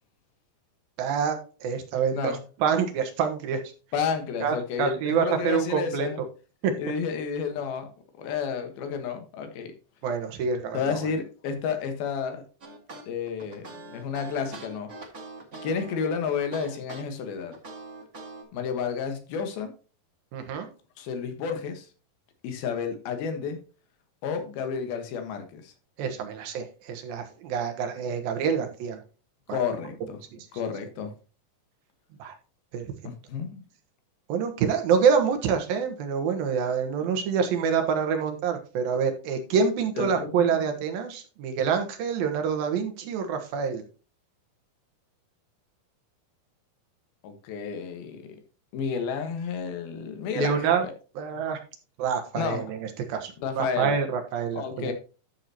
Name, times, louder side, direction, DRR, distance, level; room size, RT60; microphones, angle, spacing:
voice 1, 1.0-3.6 4.4-6.1 6.6-6.7 10.0-10.8 20.3-20.7 26.0-29.0 32.2-32.3 32.7-32.9 34.3-43.8 50.4-50.8 51.2-51.6 52.0-54.9, right 6 dB, 75° right, 5 dB, 3.1 m, -26 dB
voice 2, 3.9-6.2 6.8-7.9 8.2-9.7 10.7-12.4 13.1-14.9 15.6-17.5 18.5-19.7 21.0-21.9 22.4-23.6 24.2-25.7 29.5-30.2 30.5-31.1 33.0-33.6 40.0-40.7 47.2-48.4 48.7-50.9 51.3-51.4 52.3-52.6 53.4-53.9 54.5-54.9, left 6 dB, 85° left, 7 dB, 3.3 m, -31 dB
sound 1, 12.6-18.4, right 3 dB, 35° right, 1.2 m, -43 dB
12.0 x 6.9 x 2.8 m, 0.35 s
omnidirectional pair, 4.2 m